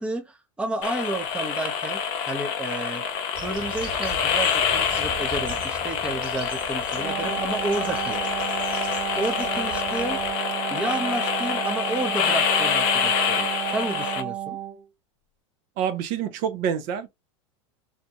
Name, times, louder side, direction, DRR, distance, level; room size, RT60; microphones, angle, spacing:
voice 1, 0.0-3.0 3.4-8.4 9.2-10.2 10.7-14.6, right 2 dB, 5° right, 0.6 m, -31 dB
sound 1, 0.8-14.2, left 7 dB, 50° left, 0.7 m, -26 dB
sound 2, 3.3-10.3, right 4 dB, 30° right, 1.2 m, -41 dB
Wind instrument woodwind instrument, 6.9-14.9, right 12 dB, 75° right, 1.0 m, -32 dB
voice 2, 15.8-17.1, right 8 dB, 55° right, 0.7 m, -27 dB
2.6 x 2.2 x 2.8 m
hypercardioid pair, 110°, 16 cm